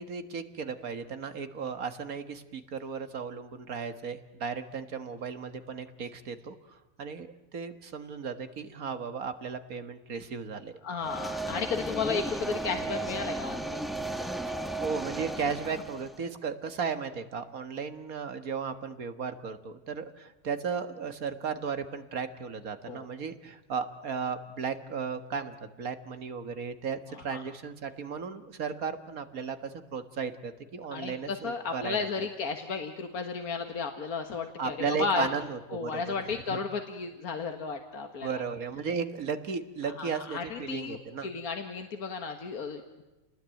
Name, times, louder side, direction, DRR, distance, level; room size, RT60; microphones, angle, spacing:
voice 1, 0.0-10.7 14.2-32.3 34.6-36.6 38.2-41.3, right 5 dB, 75° right, 9 dB, 2.0 m, -35 dB
voice 2, 10.8-13.8 22.9-23.1 27.1-27.4 30.9-35.3 35.7-38.4 39.8-43.0, left 5 dB, 80° left, 5 dB, 2.0 m, -34 dB
sound 1, 11.0-16.2, right 2 dB, ahead, 1.1 m, -35 dB
29.5 x 20.0 x 9.1 m, 1.1 s
omnidirectional pair, 1.5 m